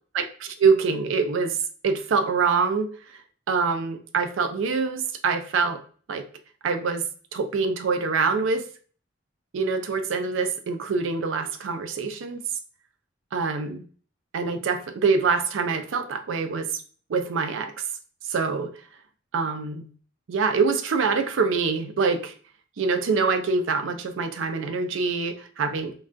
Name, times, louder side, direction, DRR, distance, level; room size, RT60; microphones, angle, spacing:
voice 1, 0.1-1.6 1.8-2.9 3.5-5.8 6.1-6.2 6.6-7.1 7.3-8.7 9.5-12.4 13.3-13.8 14.3-16.8 17.1-17.7 18.3-18.7 19.3-19.9 20.3-22.3 22.8-26.0, right 4 dB, 85° right, 8 dB, 0.4 m, -25 dB
3.2 x 2.3 x 2.5 m, 0.42 s
head